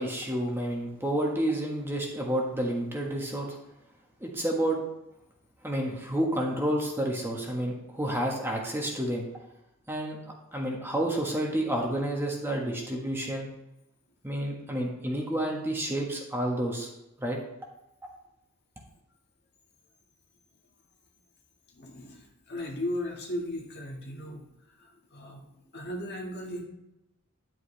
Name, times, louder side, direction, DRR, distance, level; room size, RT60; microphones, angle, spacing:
voice 1, 0.0-3.5 4.2-4.8 5.6-9.2 9.9-13.5 14.2-16.9 17.2-17.4 18.0-18.1, right 1 dB, 10° right, -1 dB, 1.4 m, -30 dB
voice 2, 21.7-24.4 24.8-26.6, left 1 dB, 50° left, 0 dB, 1.8 m, -36 dB
11.0 x 7.9 x 3.3 m, 0.87 s
head